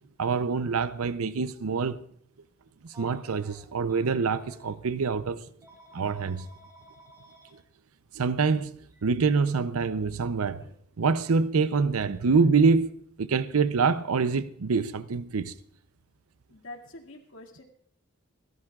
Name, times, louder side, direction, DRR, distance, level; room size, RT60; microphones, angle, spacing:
voice 1, 0.2-2.0 3.0-5.4 5.9-6.5 8.1-8.7 9.0-10.7 11.0-15.5, right 4 dB, 80° right, 0.6 m, -25 dB
Telephone, 2.9-4.7 5.6-7.5 8.9-9.0 10.5-10.7, right 1 dB, 15° right, 4.4 m, -53 dB
voice 2, 16.5-17.6, left 2 dB, 65° left, 2.2 m, -45 dB
29.5 x 13.5 x 2.4 m
head